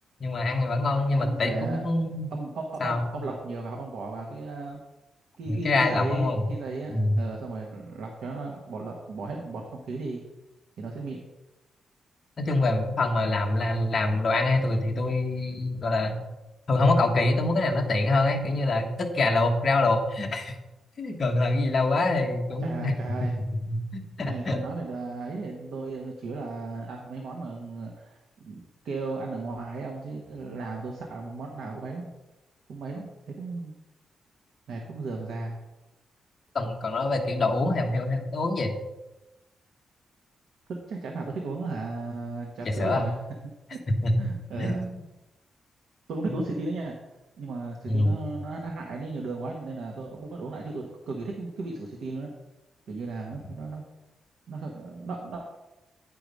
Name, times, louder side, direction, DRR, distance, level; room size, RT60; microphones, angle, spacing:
voice 1, 0.2-2.3 2.8-3.1 5.5-6.5 6.9-7.2 12.4-16.2 16.7-20.5 21.0-22.9 23.2-24.6 36.5-38.7 42.6-43.1 44.0-44.1 44.6-44.9 46.3-46.4 47.9-48.3, left 2 dB, 35° left, 2 dB, 1.1 m, -25 dB
voice 2, 1.2-1.9 2.3-4.8 5.4-10.2 10.8-11.2 22.6-23.4 24.2-32.1 32.7-33.7 34.7-35.6 40.7-43.2 43.4-43.8 44.2-44.8 46.1-46.9 47.4-52.3 52.9-53.8 54.5-55.4, right 3 dB, 70° right, 1 dB, 1.1 m, -35 dB
9.6 x 4.8 x 5.2 m, 1.0 s
wide cardioid pair, 175°, 0 cm